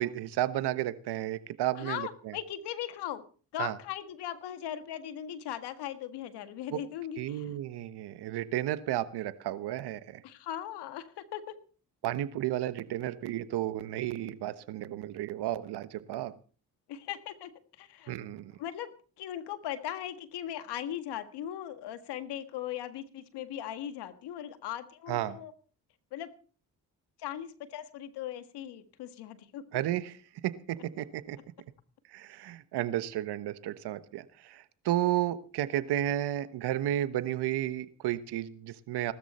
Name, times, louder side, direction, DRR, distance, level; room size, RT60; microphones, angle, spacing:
voice 1, 0.0-2.4 3.6-3.7 6.7-6.8 7.2-10.2 12.0-16.3 18.1-18.5 25.1-25.4 29.7-30.1 30.4-31.4 32.1-39.1, right 13 dB, 80° right, 13 dB, 1.3 m, -32 dB
voice 2, 1.7-3.2 3.5-7.5 10.2-11.5 16.9-17.5 17.8-18.2 18.6-25.5 26.1-26.3 27.2-29.6, left 11 dB, 85° left, 10 dB, 1.8 m, -39 dB
19.0 x 13.0 x 4.3 m, 0.40 s
supercardioid pair, 60°, 39 cm